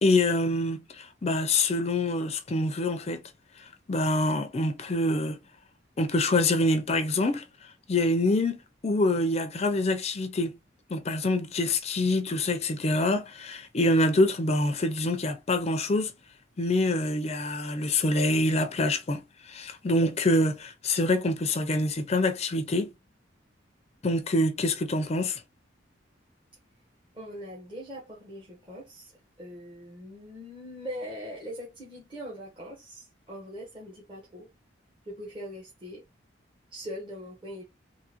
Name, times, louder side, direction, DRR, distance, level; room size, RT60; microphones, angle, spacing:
voice 1, 0.0-3.2 3.9-5.4 6.0-7.4 7.9-10.5 10.9-16.1 16.6-19.2 19.5-22.9 24.0-25.4, left 2 dB, 35° left, 0.5 m, -25 dB
voice 2, 27.1-34.5 35.0-36.0 36.7-37.6, equal, 25° right, 1.1 m, -41 dB
3.7 x 2.6 x 2.9 m
head